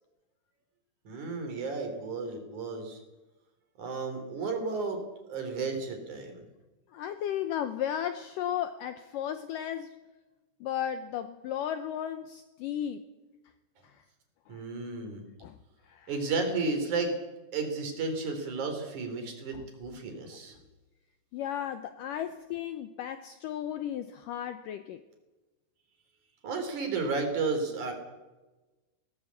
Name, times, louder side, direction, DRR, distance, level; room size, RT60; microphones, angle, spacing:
voice 1, 1.0-3.0 3.8-6.4 14.5-15.2 16.1-17.2 17.5-20.6 26.4-27.9, right 4 dB, 45° right, 5 dB, 4.4 m, -33 dB
voice 2, 6.9-9.9 10.6-13.0 14.5-14.6 15.4-15.5 15.9-16.1 21.3-25.0, left 10 dB, 85° left, 10 dB, 1.9 m, -34 dB
19.5 x 18.5 x 8.3 m, 1.1 s
omnidirectional pair, 4.9 m